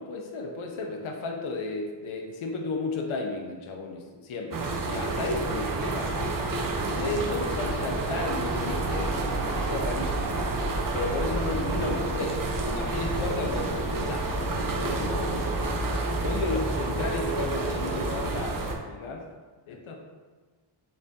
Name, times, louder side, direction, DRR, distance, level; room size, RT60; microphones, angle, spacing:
voice 1, 0.0-6.3 6.9-9.2 9.5-10.4 10.9-15.6 16.2-19.3 19.7-20.0, left 3 dB, 80° left, 1 dB, 0.6 m, -33 dB
sound 1, 4.5-18.7, right 2 dB, 45° right, 0.5 m, -29 dB
4.1 x 2.5 x 3.6 m, 1.4 s
wide cardioid pair, 145°, 48 cm